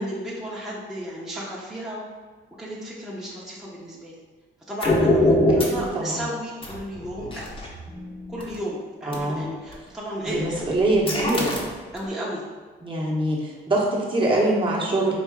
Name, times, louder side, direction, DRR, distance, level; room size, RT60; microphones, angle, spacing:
voice 1, 0.0-2.0 2.6-4.2 4.7-7.7 8.3-10.6 11.9-12.4, equal, ahead, -7 dB, 0.8 m, -33 dB
sound 1, 4.8-5.9 6.6-8.5 9.1-9.2 9.7-9.9 10.3-12.1, left 1 dB, 25° left, 0.9 m, -23 dB
voice 2, 5.5-6.2 9.1-9.5 10.2-11.6 12.8-15.1, right 1 dB, 25° right, -4 dB, 1.0 m, -24 dB
4.2 x 2.6 x 3.7 m, 1.5 s
cardioid pair, 90°, 20 cm